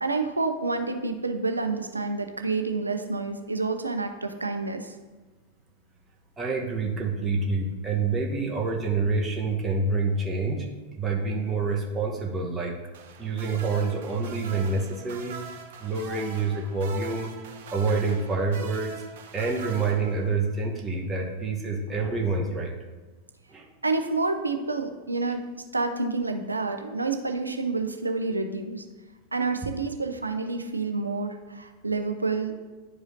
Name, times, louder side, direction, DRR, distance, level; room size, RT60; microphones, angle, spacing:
voice 1, 0.0-4.9 23.8-25.4 25.7-28.8 29.3-32.5, right 3 dB, 80° right, 6 dB, 0.6 m, -28 dB
voice 2, 6.4-10.7 11.0-12.7 13.2-15.4 15.8-17.3 17.7-18.9 19.3-22.7 23.5-23.7, right 3 dB, 20° right, 0 dB, 1.1 m, -27 dB
sound 1, 12.9-20.5 21.9-22.1, right 7 dB, 55° right, 0.9 m, -43 dB
10.5 x 4.9 x 2.7 m, 1.2 s
figure-of-eight pair, 90°, 0 cm